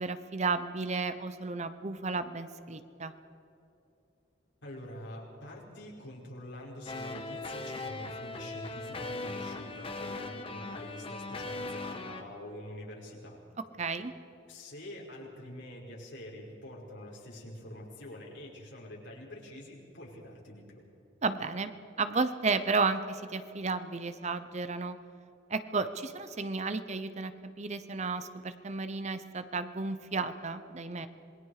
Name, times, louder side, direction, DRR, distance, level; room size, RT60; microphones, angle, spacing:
voice 1, 0.0-3.1 13.8-14.1 21.2-21.7 22.0-25.0 25.5-31.1, right 4 dB, 35° right, 11 dB, 0.8 m, -33 dB
voice 2, 4.6-13.4 14.5-20.8, left 1 dB, 75° left, -3 dB, 5.3 m, -45 dB
sound 1, 6.9-12.2, left 2 dB, 30° left, 1.5 m, -39 dB
27.0 x 21.0 x 4.9 m, 2.9 s
head